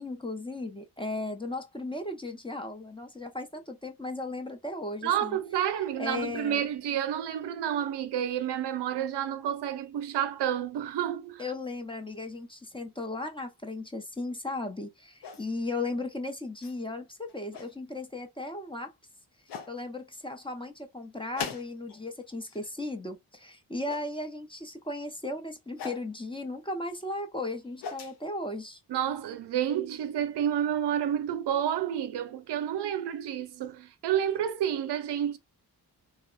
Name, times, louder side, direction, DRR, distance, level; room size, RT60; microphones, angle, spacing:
voice 1, 0.0-5.4 6.0-6.6 11.4-18.9 19.7-28.8, left 2 dB, 15° left, 0.5 m, -36 dB
voice 2, 5.0-11.4 28.9-35.4, right 10 dB, 85° right, 0.5 m, -30 dB
sound 1, 15.2-15.8 16.6-16.8 17.3-17.7 18.8-18.9 19.5-19.7 21.3-22.0 22.3-22.7 23.9-24.1 25.8-26.1 27.5-28.2, left 6 dB, 80° left, 0.7 m, -40 dB
2.9 x 2.0 x 2.3 m
cardioid pair, 60°, 40 cm